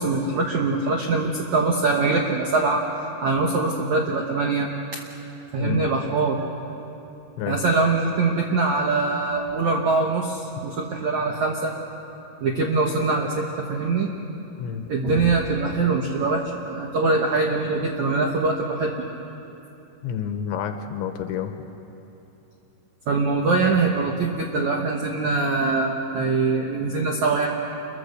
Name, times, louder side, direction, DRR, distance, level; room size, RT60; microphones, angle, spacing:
voice 1, 0.0-2.8 3.2-4.7 5.5-6.4 7.5-11.7 12.4-14.1 14.9-18.9 23.1-27.5, right 3 dB, 75° right, 1 dB, 1.7 m, -23 dB
voice 2, 5.6-5.9 7.4-7.6 14.6-14.8 20.0-21.5, left 8 dB, 80° left, 7 dB, 3.2 m, -29 dB
28.5 x 23.0 x 6.7 m, 2.9 s
omnidirectional pair, 5.5 m